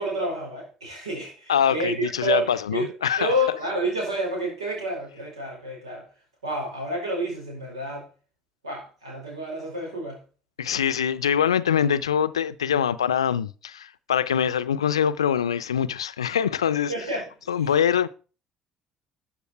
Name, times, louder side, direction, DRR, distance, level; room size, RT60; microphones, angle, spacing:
voice 1, 0.0-6.1 6.4-8.1 8.6-10.2 16.9-17.3, right 1 dB, 90° right, 5.0 m, -29 dB
voice 2, 1.5-3.3 10.6-16.9 17.5-18.1, left 8 dB, 90° left, 0.5 m, -24 dB
13.5 x 7.1 x 4.6 m
hypercardioid pair, 55°, 3 cm